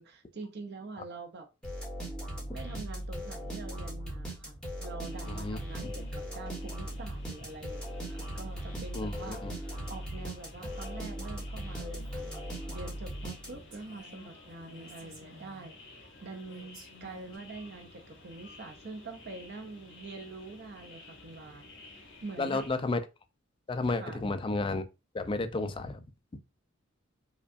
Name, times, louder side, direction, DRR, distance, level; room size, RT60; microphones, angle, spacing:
voice 1, 0.0-1.5 2.5-22.7 24.0-24.2, right 3 dB, 55° right, 0.6 m, -45 dB
sound 1, 1.6-13.8, right 1 dB, 5° left, 1.3 m, -39 dB
sound 2, 5.0-22.7, left 2 dB, 60° left, 1.6 m, -53 dB
voice 2, 5.3-5.9 8.9-9.5 22.4-23.0 23.7-24.8 25.1-26.0, left 3 dB, 25° left, 0.4 m, -32 dB
Female speech woman speaking, 12.0-12.6 13.0-13.1 13.4-15.7 16.5-17.4, equal, 75° right, 1.9 m, -55 dB
4.9 x 2.3 x 2.5 m
head